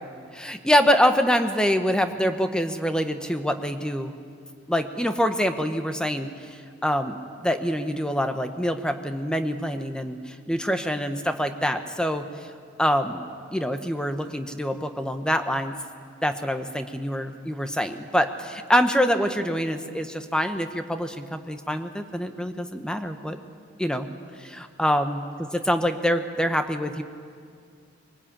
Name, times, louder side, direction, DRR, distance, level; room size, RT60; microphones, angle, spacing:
voice 1, 0.3-4.1 4.7-6.3 6.8-12.3 12.8-13.2 13.5-15.7 16.2-23.4 23.8-24.1 24.4-25.2 25.7-27.0, equal, 5° left, 7 dB, 1.0 m, -25 dB
22.0 x 19.0 x 8.7 m, 2.2 s
head